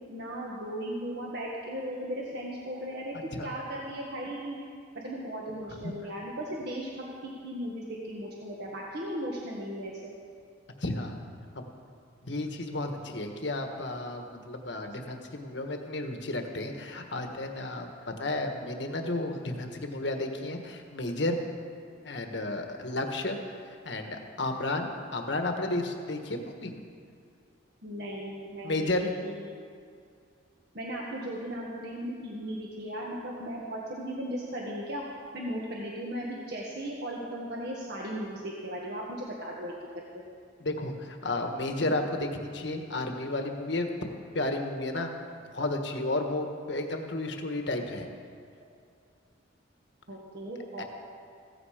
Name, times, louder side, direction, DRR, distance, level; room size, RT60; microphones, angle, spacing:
voice 1, 0.1-4.6 4.9-10.1 27.8-29.0 29.2-29.4 30.7-35.0 35.3-39.7 40.1-40.2 50.1-50.8, equal, 55° right, -3 dB, 1.7 m, -37 dB
voice 2, 10.8-11.2 11.5-11.7 12.2-21.4 22.0-26.7 28.6-29.1 40.6-45.1 45.5-48.1 50.8-50.9, left 2 dB, 65° left, 4 dB, 1.5 m, -32 dB
16.0 x 15.0 x 5.0 m, 2.2 s
head